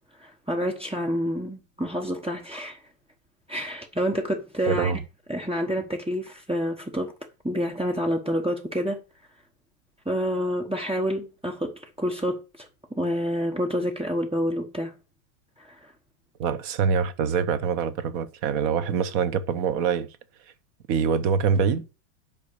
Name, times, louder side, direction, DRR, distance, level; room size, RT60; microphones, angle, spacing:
voice 1, 0.2-2.8 3.5-4.9 5.3-7.1 7.4-9.0 10.0-14.9 15.6-15.9, equal, 5° right, 0.6 m, -28 dB
voice 2, 4.7-5.0 16.4-20.1 20.9-21.8, right 6 dB, 55° right, 1.2 m, -24 dB
9.4 x 5.8 x 6.8 m
omnidirectional pair, 2.2 m